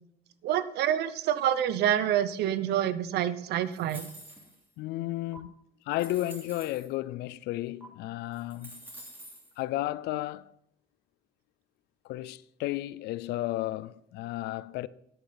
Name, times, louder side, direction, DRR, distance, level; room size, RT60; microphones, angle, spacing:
voice 1, 0.4-4.1, right 10 dB, 75° right, 0.7 m, -27 dB
sound 1, 3.7-4.7 5.3-5.4 5.9-6.9 7.8-7.9 8.3-9.5, right 1 dB, 10° right, 3.0 m, -48 dB
voice 2, 4.8-5.5 5.9-8.9 9.6-10.5 12.0-14.9, left 16 dB, 80° left, 0.4 m, -33 dB
10.5 x 8.7 x 4.0 m
cardioid pair, 110°, 17 cm